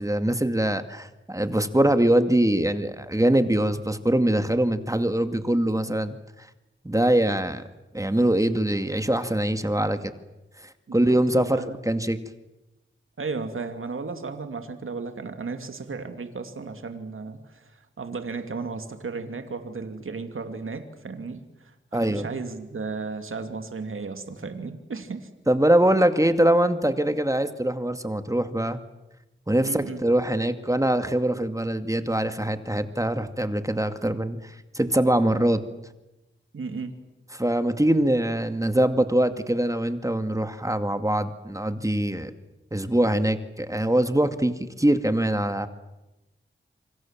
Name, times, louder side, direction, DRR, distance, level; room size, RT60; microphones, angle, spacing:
voice 1, 0.0-6.2 6.8-7.6 7.9-10.1 10.9-12.2 21.9-22.3 25.5-28.8 29.5-35.6 37.3-42.3 42.7-45.7, right 1 dB, 15° right, 9 dB, 2.3 m, -23 dB
voice 2, 10.9-11.8 13.2-25.3 29.6-30.0 36.5-36.9, right 4 dB, 80° right, 7 dB, 2.7 m, -35 dB
27.5 x 25.0 x 7.5 m, 0.98 s
cardioid pair, 50°, 21 cm